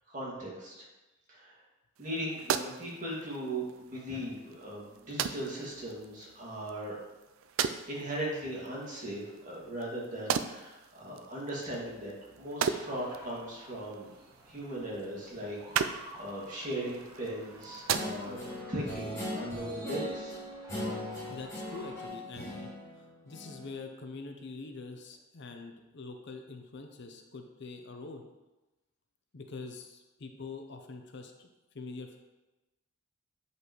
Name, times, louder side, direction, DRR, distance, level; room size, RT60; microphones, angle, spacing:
voice 1, 0.1-0.9 1.3-1.6 2.0-7.0 7.9-14.1 14.5-20.3, right 1 dB, 40° right, -5 dB, 2.0 m, -38 dB
sound 1, 2.0-18.6, right 7 dB, 70° right, 0.4 m, -38 dB
sound 2, 12.7-22.1, right 1 dB, 20° right, 1.7 m, -52 dB
Guitar, 17.9-23.7, left 1 dB, 15° left, 2.3 m, -39 dB
voice 2, 21.3-22.7 23.0-28.2 29.3-31.5 31.7-32.2, left 3 dB, 55° left, 5 dB, 0.6 m, -44 dB
8.2 x 5.3 x 3.1 m, 1.0 s
head